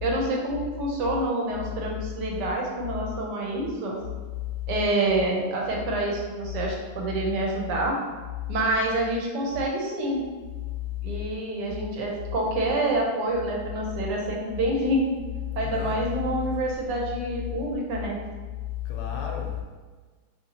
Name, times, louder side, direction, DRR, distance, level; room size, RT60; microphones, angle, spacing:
voice 1, 0.0-4.0 4.7-8.0 8.5-10.2 11.0-15.1 15.6-18.2, right 1 dB, 85° right, -1 dB, 1.2 m, -27 dB
voice 2, 15.6-16.0 18.8-19.6, left 8 dB, 80° left, 1 dB, 1.2 m, -31 dB
2.9 x 2.8 x 2.7 m, 1.4 s
omnidirectional pair, 1.8 m